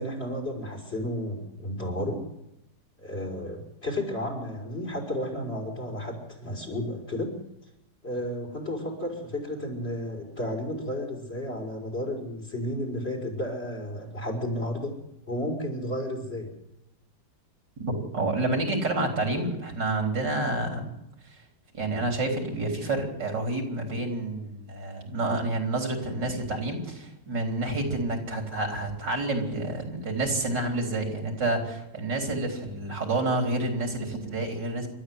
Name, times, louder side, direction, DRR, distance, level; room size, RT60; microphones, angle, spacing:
voice 1, 0.0-2.2 3.0-7.3 8.0-15.0 15.3-16.5, left 1 dB, 35° left, 2 dB, 5.5 m, -32 dB
voice 2, 17.8-20.9 21.7-34.9, right 2 dB, 75° right, 2 dB, 4.6 m, -29 dB
29.0 x 13.0 x 8.0 m, 0.86 s
omnidirectional pair, 1.9 m